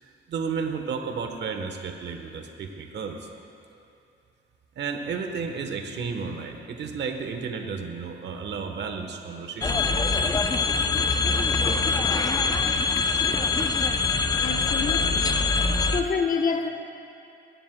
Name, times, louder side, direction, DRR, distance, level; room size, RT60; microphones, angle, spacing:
voice 1, 0.0-3.3 4.8-10.2, right 5 dB, 60° right, 4 dB, 1.1 m, -33 dB
sound 1, 9.6-16.0, left 4 dB, 20° left, 0.4 m, -23 dB
voice 2, 14.4-15.4 15.9-16.7, left 5 dB, 45° left, 4 dB, 1.0 m, -28 dB
17.5 x 10.0 x 2.2 m, 2.6 s
cardioid pair, 90°, 20 cm